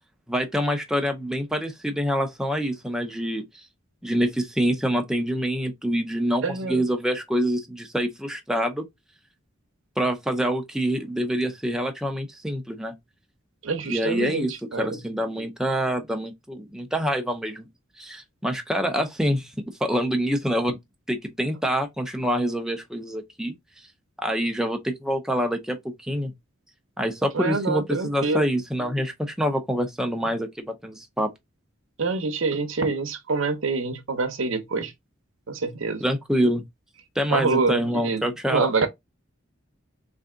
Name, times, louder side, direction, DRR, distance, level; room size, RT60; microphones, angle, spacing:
voice 1, 0.3-3.4 4.0-8.8 10.0-12.9 13.9-17.7 18.0-19.5 19.8-20.8 21.1-23.5 24.2-25.8 26.0-26.3 27.0-31.3 36.0-36.6 37.2-38.7, equal, 5° right, 0.6 m, -26 dB
voice 2, 6.4-6.8 13.6-15.0 27.3-28.4 32.0-34.9 35.5-36.0 37.3-38.9, right 4 dB, 80° right, 0.7 m, -26 dB
3.4 x 2.6 x 3.7 m
head